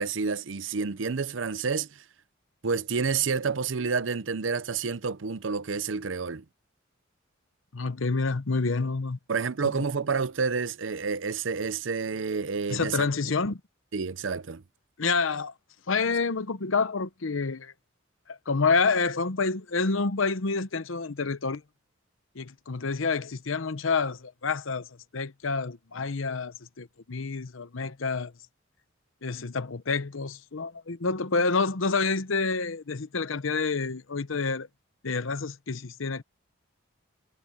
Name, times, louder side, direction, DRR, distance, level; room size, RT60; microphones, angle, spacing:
voice 1, 0.0-2.0 2.6-6.4 9.3-13.1 13.9-14.6, right 5 dB, 70° right, 0.7 m, -29 dB
voice 2, 7.7-9.2 12.7-13.6 15.0-15.5 15.9-17.7 18.3-21.6 22.3-24.9 25.1-28.3 29.2-34.7 35.0-36.2, left 4 dB, 80° left, 0.9 m, -28 dB
head